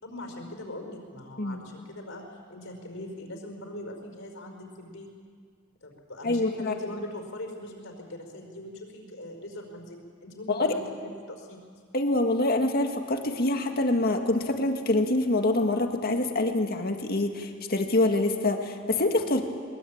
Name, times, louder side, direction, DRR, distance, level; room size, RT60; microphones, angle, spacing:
voice 1, 0.0-5.1 5.8-11.6, left 1 dB, 65° left, 3 dB, 5.0 m, -41 dB
voice 2, 6.2-6.7 10.5-10.7 11.9-19.4, left 2 dB, 45° left, 4 dB, 2.0 m, -25 dB
22.5 x 21.5 x 8.8 m, 2.1 s
head